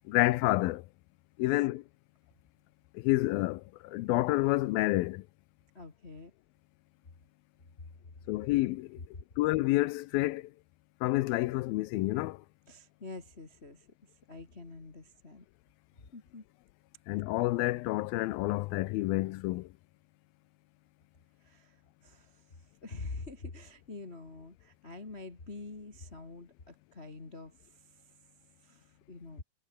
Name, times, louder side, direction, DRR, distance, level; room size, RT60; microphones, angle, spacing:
voice 1, 0.1-0.9 1.4-1.8 2.9-5.3 8.3-9.0 9.4-10.5 11.0-12.4 17.1-19.7, left 19 dB, 85° left, 2.5 m, -29 dB
voice 2, 5.7-6.3 12.7-13.9 14.3-15.4 16.1-16.4 21.4-21.8 22.0-22.4 22.8-27.5 28.6-29.4, left 3 dB, 20° left, 1.9 m, -46 dB
omnidirectional pair, 4.2 m